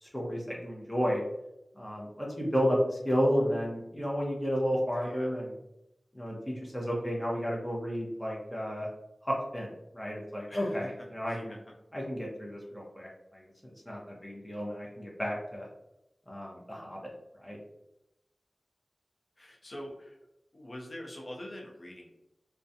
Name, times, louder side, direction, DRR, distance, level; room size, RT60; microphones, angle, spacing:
voice 1, 0.0-1.2 1.7-5.5 6.1-8.9 9.2-11.5 11.9-15.7 16.3-17.0 17.4-17.6, equal, 10° left, -4 dB, 0.7 m, -32 dB
voice 2, 10.5-10.9 11.3-11.6 19.4-20.2 20.5-22.1, left 1 dB, 55° left, -1 dB, 0.6 m, -44 dB
2.4 x 2.1 x 2.7 m, 0.86 s
cardioid pair, 45°, 0 cm